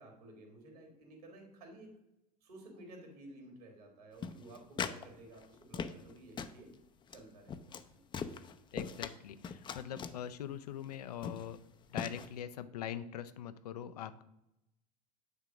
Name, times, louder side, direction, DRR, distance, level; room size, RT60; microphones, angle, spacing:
voice 1, 0.0-1.9 2.4-6.7 7.1-8.0, right 1 dB, 70° right, 3 dB, 2.6 m, -54 dB
sound 1, 4.2-5.1 5.3-6.1 6.4-6.6 7.1-7.2 7.5-7.9 8.1-9.1 9.4-10.2 10.8-10.9 11.2-11.6 12.0-12.3, left 6 dB, 25° left, 0.5 m, -40 dB
voice 2, 8.7-11.6 11.9-14.2, left 10 dB, 70° left, 13 dB, 0.6 m, -42 dB
9.5 x 3.7 x 6.1 m, 0.88 s
figure-of-eight pair, 80°, 21 cm